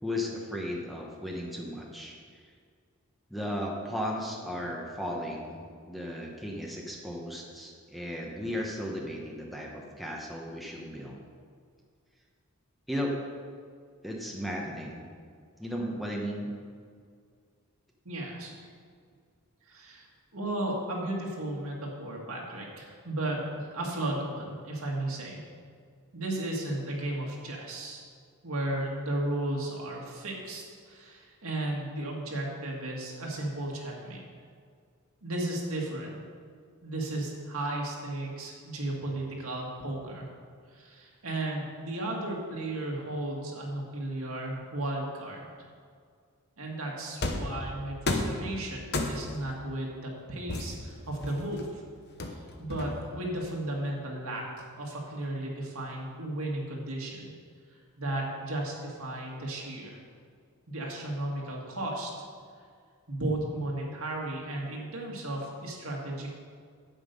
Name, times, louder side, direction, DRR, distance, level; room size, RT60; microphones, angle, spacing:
voice 1, 0.0-2.2 3.3-5.6 5.8-11.2 12.9-13.2 14.0-15.1 15.6-16.5, equal, ahead, -2 dB, 1.0 m, -35 dB
voice 2, 18.1-18.5 19.7-20.1 20.3-25.4 26.1-28.0 28.4-34.2 35.2-36.2 36.8-40.3 40.7-45.5 46.6-51.8 52.3-57.3 58.0-60.0 60.7-62.1 63.1-66.4, right 1 dB, 70° right, -1 dB, 1.9 m, -34 dB
sound 1, 47.2-47.6 48.1-48.4 48.9-49.4 50.5-51.6 52.2-53.2, left 2 dB, 45° left, 0.9 m, -32 dB
8.9 x 8.0 x 5.3 m, 2.1 s
head